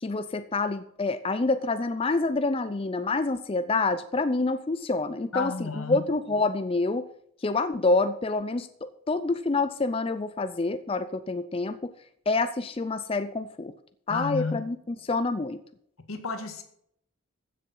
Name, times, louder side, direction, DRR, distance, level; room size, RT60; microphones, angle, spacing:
voice 1, 0.0-7.1 7.4-11.9 12.3-13.7 14.1-14.8 15.0-15.6, left 3 dB, 25° left, 11 dB, 0.4 m, -27 dB
voice 2, 5.3-6.0 14.1-14.7 16.1-16.6, left 4 dB, 85° left, 7 dB, 1.8 m, -32 dB
15.0 x 6.8 x 5.5 m, 0.69 s
head